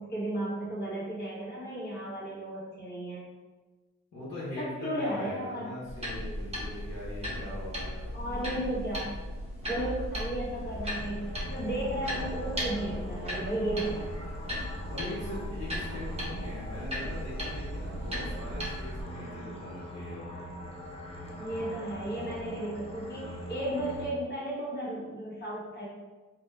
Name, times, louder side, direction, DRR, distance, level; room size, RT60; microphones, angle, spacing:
voice 1, 0.0-3.3 4.6-5.7 8.1-9.1 9.7-14.3 21.4-25.8, right 1 dB, 35° left, -7 dB, 1.3 m, -34 dB
voice 2, 4.1-8.1 14.9-20.3, left 1 dB, 60° left, -8 dB, 1.1 m, -41 dB
sound 1, 5.8-19.0, equal, 20° right, 0.7 m, -36 dB
sound 2, 10.5-24.1, equal, 20° left, 0.5 m, -42 dB
2.7 x 2.2 x 3.4 m, 1.3 s
wide cardioid pair, 135°, 29 cm